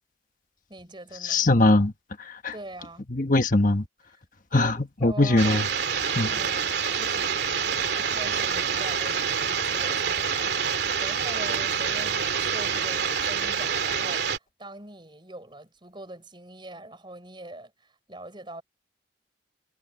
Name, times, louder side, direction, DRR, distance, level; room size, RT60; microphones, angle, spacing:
voice 1, 0.7-1.5 2.5-3.0 4.5-5.6 6.2-18.6, right 1 dB, 25° right, 5.5 m, -43 dB
voice 2, 1.2-1.9 2.2-2.5 3.1-3.8 4.5-5.6 6.1-6.3, left 2 dB, 50° left, 1.3 m, -21 dB
sound 1, 5.4-14.4, right 7 dB, 70° right, 2.6 m, -27 dB
head